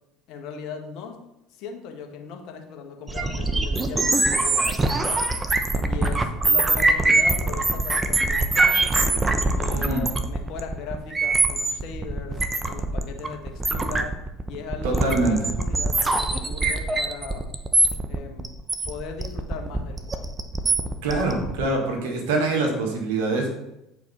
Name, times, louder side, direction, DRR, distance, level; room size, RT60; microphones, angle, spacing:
voice 1, 0.3-1.2 1.5-5.2 5.9-9.1 9.5-14.2 14.4-17.5 18.1-18.5 18.8-20.4, left 5 dB, 60° left, 3 dB, 1.3 m, -38 dB
sound 1, 3.1-21.6, right 2 dB, 20° right, 0.9 m, -23 dB
voice 2, 14.8-15.5 21.0-23.5, right 2 dB, 75° right, 1 dB, 1.8 m, -24 dB
8.5 x 4.7 x 4.2 m, 0.87 s
hypercardioid pair, 70°, 0 cm